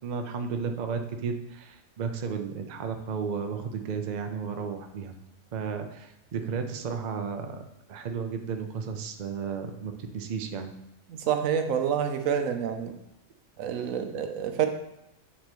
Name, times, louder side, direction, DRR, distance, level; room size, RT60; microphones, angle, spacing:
voice 1, 0.0-5.1 5.5-7.6 7.9-10.7 13.8-13.9, right 5 dB, 50° right, 5 dB, 0.6 m, -33 dB
voice 2, 11.3-12.9 13.6-14.7, right 8 dB, 85° right, 7 dB, 1.1 m, -27 dB
8.6 x 4.1 x 3.0 m, 0.86 s
omnidirectional pair, 1.4 m